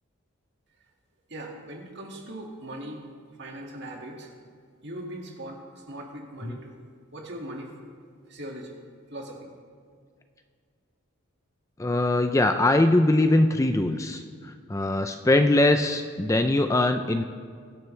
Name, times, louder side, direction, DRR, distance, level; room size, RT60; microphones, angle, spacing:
voice 1, 1.3-4.3 4.8-6.8 7.1-7.7 8.2-8.7 9.1-9.5, right 1 dB, 50° right, 0 dB, 2.0 m, -40 dB
voice 2, 11.8-17.2, left 2 dB, 15° left, 7 dB, 0.4 m, -22 dB
22.5 x 11.5 x 3.3 m, 2.1 s
head